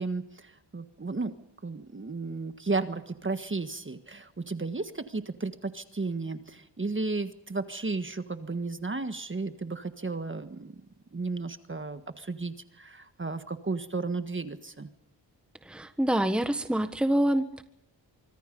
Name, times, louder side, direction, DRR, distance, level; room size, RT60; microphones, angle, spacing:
voice 1, 0.0-1.3 1.6-10.8 11.1-14.9, right 3 dB, 25° right, 9 dB, 1.6 m, -34 dB
voice 2, 15.7-17.6, right 1 dB, ahead, 9 dB, 1.4 m, -26 dB
25.0 x 24.5 x 5.4 m, 0.75 s
wide cardioid pair, 105°, 44 cm